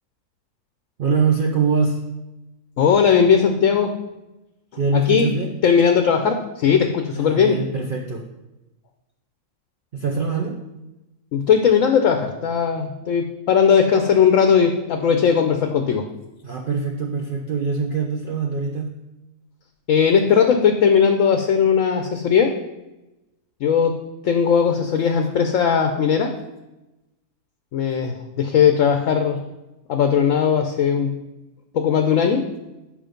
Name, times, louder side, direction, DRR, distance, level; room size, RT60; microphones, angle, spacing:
voice 1, 1.0-2.0 4.8-5.5 7.1-8.3 9.9-10.6 16.4-18.9, right 5 dB, 50° right, 1 dB, 0.7 m, -23 dB
voice 2, 2.8-4.0 4.9-5.3 5.6-7.6 11.3-16.1 19.9-22.5 23.6-24.0 24.2-26.3 27.7-29.4 29.9-31.2 31.7-32.5, left 7 dB, 65° left, 6 dB, 1.0 m, -18 dB
7.6 x 5.0 x 5.2 m, 0.98 s
omnidirectional pair, 1.6 m